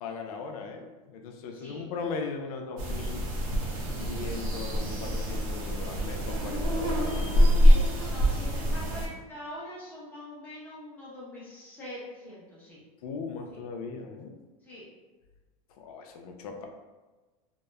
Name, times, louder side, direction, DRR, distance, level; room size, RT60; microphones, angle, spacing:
voice 1, 0.0-3.2 3.9-7.6 13.0-14.4 15.8-16.7, left 4 dB, 85° left, 3 dB, 0.5 m, -38 dB
sound 1, 2.8-9.1, equal, 70° right, 0.7 m, -25 dB
voice 2, 8.1-12.8 13.5-13.6 14.6-14.8, left 1 dB, 10° left, -8 dB, 0.8 m, -43 dB
2.8 x 2.0 x 2.3 m, 1.2 s
supercardioid pair, 160°, 19 cm